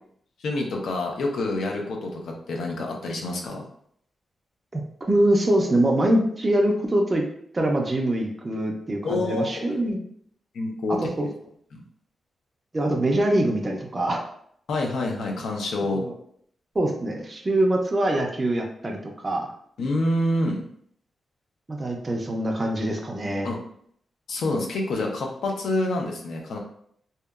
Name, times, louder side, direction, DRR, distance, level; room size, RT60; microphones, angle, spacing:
voice 1, 0.4-3.6 9.0-9.8 10.5-11.3 11.7-11.8 14.7-16.0 19.8-20.6 23.4-23.6 24.3-26.6, left 2 dB, 75° left, 1 dB, 0.5 m, -27 dB
voice 2, 4.7-7.2 7.5-10.0 10.9-11.3 12.7-14.2 15.9-16.1 16.8-19.5 21.7-23.5, right 1 dB, 20° right, 1 dB, 0.3 m, -24 dB
2.7 x 2.2 x 2.3 m, 0.66 s
wide cardioid pair, 180°, 0 cm